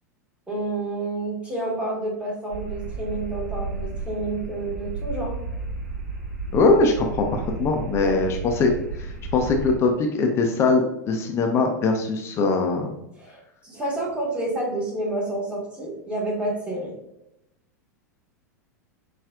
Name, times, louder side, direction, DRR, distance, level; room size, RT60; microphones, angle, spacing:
voice 1, 0.5-5.4 7.9-8.2 13.2-16.9, right 2 dB, 10° right, -4 dB, 1.4 m, -29 dB
sound 1, 2.5-9.8, right 4 dB, 55° right, 0.9 m, -33 dB
voice 2, 6.5-12.9, left 3 dB, 30° left, 3 dB, 0.5 m, -22 dB
5.5 x 2.4 x 2.3 m, 0.84 s
figure-of-eight pair, 90°, 10 cm